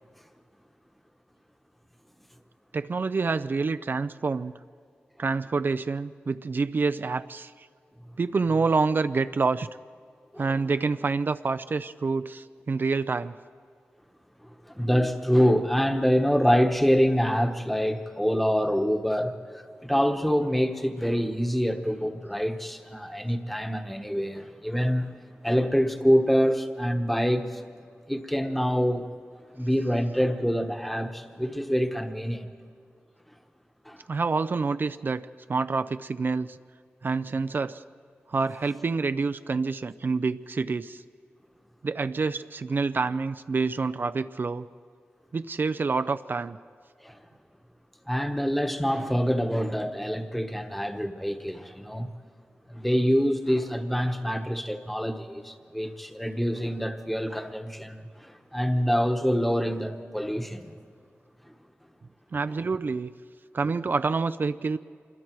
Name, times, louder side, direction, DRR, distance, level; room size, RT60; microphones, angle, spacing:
voice 1, 2.7-4.5 5.2-7.7 8.2-9.7 10.4-13.3 34.1-36.6 37.0-37.8 38.3-41.0 41.8-44.7 45.3-46.6 62.3-63.1 63.5-64.8, right 4 dB, 50° right, 11 dB, 0.5 m, -27 dB
voice 2, 14.6-25.1 25.4-27.6 28.1-29.0 29.5-32.5 33.8-34.0 47.0-47.2 48.1-52.1 52.7-60.8, equal, 5° left, 5 dB, 1.2 m, -26 dB
27.0 x 22.0 x 4.6 m, 2.2 s
wide cardioid pair, 120°, 4 cm